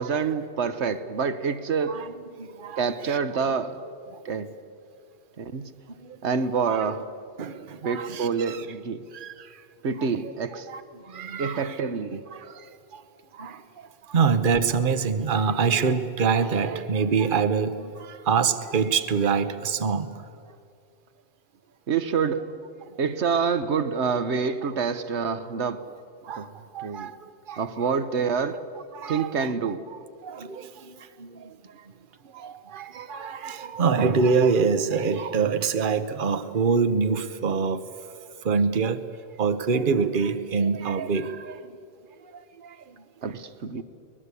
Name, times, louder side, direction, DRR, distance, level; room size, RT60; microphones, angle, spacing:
voice 1, 0.0-2.0 2.8-3.8 4.2-4.5 5.4-5.7 6.2-7.0 7.8-9.1 9.8-10.7 11.4-12.3 21.9-22.5 23.0-25.9 26.4-26.5 26.8-27.1 27.6-28.6 29.1-29.8 43.2-43.8, right 5 dB, 80° right, 1.3 m, -27 dB
voice 2, 1.9-3.5 4.1-4.2 6.0-6.2 6.7-6.9 7.4-8.7 9.1-9.6 10.0-10.3 10.7-11.8 12.3-13.0 13.3-20.2 22.9-23.0 26.2-27.9 28.9-29.5 29.9-31.9 32.2-37.8 38.4-39.0 39.4-41.7 42.3-43.0, right 5 dB, 50° right, 1.1 m, -26 dB
23.5 x 19.5 x 8.3 m
omnidirectional pair, 1.1 m